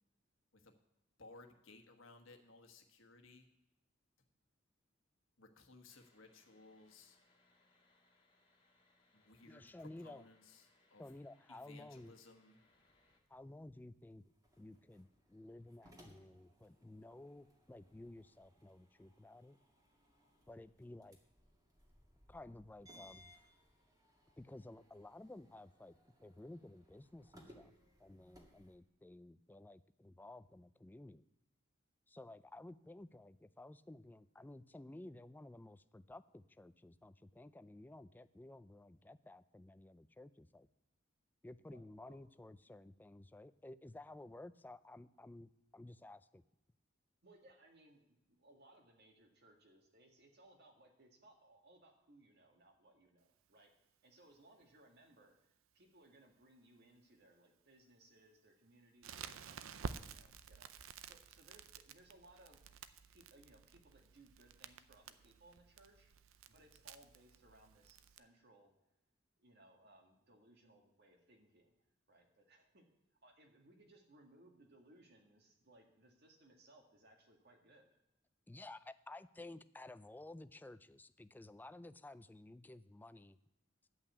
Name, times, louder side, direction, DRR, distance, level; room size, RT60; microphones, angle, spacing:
voice 1, 1.2-3.5 5.4-7.2 9.1-11.0 11.5-12.6, left 3 dB, 70° left, 5 dB, 1.3 m, -60 dB
sound 1, 5.9-13.2, left 2 dB, 25° left, 1.8 m, -74 dB
voice 2, 9.5-10.3 11.0-12.1 13.3-14.2 14.6-19.6 20.5-21.2 22.3-23.3 24.4-27.7 28.0-31.2 32.1-40.7 41.4-46.4 78.5-83.4, left 2 dB, 10° left, 14 dB, 0.3 m, -54 dB
sound 2, 12.6-28.7, equal, 20° right, 1.9 m, -66 dB
voice 3, 41.7-42.2 42.7-42.8 47.2-53.7 54.0-66.1 66.5-68.7 69.4-71.8 72.1-72.9 73.1-77.9, right 1 dB, 55° right, 3 dB, 1.7 m, -65 dB
Crackle, 59.0-68.2, right 6 dB, 90° right, 0.5 m, -52 dB
11.0 x 5.7 x 8.2 m, 0.92 s
head